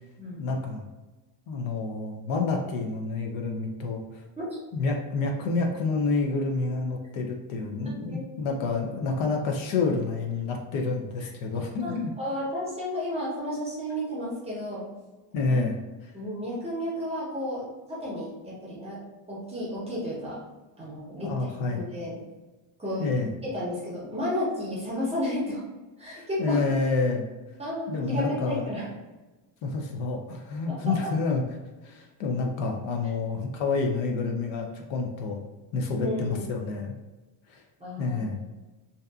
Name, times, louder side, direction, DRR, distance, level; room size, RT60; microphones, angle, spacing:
voice 1, 0.4-0.8 1.5-4.2 4.7-12.1 15.3-15.8 21.2-21.8 23.0-23.3 26.1-27.3 27.9-28.7 29.6-31.4 31.8-35.4 35.7-36.9 37.5-37.6 38.0-38.4, left 3 dB, 70° left, 2 dB, 0.5 m, -28 dB
voice 2, 7.8-8.3 11.8-14.9 15.5-15.6 16.1-19.0 19.3-20.4 20.8-21.3 21.7-22.2 22.8-23.1 23.4-25.6 26.0-26.6 27.6-28.9 30.7-30.8 36.0-36.5 37.8-38.2, equal, 15° right, -6 dB, 0.6 m, -32 dB
2.7 x 2.3 x 2.3 m, 1.1 s
cardioid pair, 155°, 49 cm